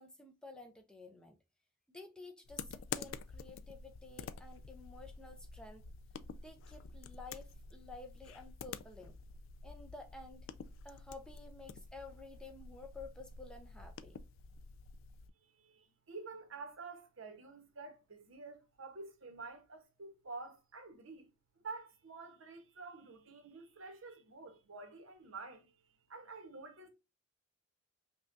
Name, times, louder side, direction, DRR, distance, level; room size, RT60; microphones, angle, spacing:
voice 1, 0.0-1.4 1.9-5.9 6.4-9.1 9.6-10.5 10.8-14.2, left 3 dB, 5° left, 0.4 m, -52 dB
sound 1, 2.5-15.3, left 5 dB, 70° left, 0.3 m, -49 dB
voice 2, 15.4-21.3 21.6-26.9, right 3 dB, 75° right, 0.9 m, -49 dB
5.4 x 2.3 x 2.4 m
head